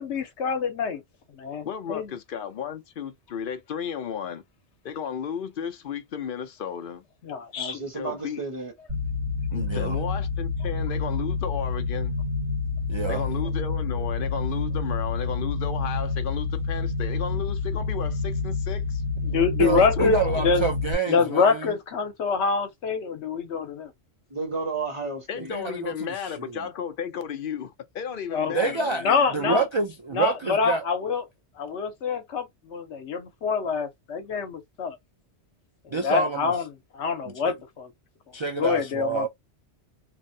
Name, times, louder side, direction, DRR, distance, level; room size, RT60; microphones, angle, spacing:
voice 1, 0.0-1.0 1.4-2.1 7.3-7.8 19.2-20.2 20.4-20.6 21.1-23.9 28.3-28.7 29.0-29.6 30.1-31.2 31.6-35.0 35.8-36.7 36.9-37.9 38.6-39.3, left 5 dB, 75° left, 1.1 m, -26 dB
voice 2, 1.6-4.4 4.8-7.0 7.9-8.4 9.5-12.1 13.1-19.0 19.8-20.5 25.3-29.6, left 8 dB, 55° left, 0.7 m, -34 dB
voice 3, 7.6-8.7 24.3-25.5, right 4 dB, 30° right, 1.1 m, -32 dB
sound 1, 8.9-20.9, left 4 dB, 80° right, 1.6 m, -28 dB
voice 4, 9.5-10.0 12.9-13.2 19.6-21.8 25.5-26.6 28.5-29.0 29.3-30.9 35.9-36.5 37.3-37.5 38.3-39.3, right 4 dB, 50° right, 0.3 m, -28 dB
3.2 x 2.0 x 2.6 m
omnidirectional pair, 1.2 m